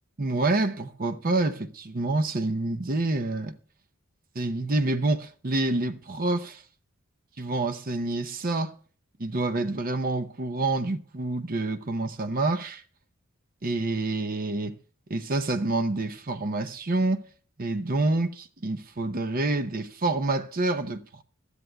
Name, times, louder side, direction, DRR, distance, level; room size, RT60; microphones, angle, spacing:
voice 1, 0.2-3.6 4.3-6.6 7.4-8.7 9.2-12.8 13.6-14.8 15.1-17.2 17.6-21.2, right 2 dB, 45° right, 0.7 m, -27 dB
21.5 x 12.5 x 2.3 m
head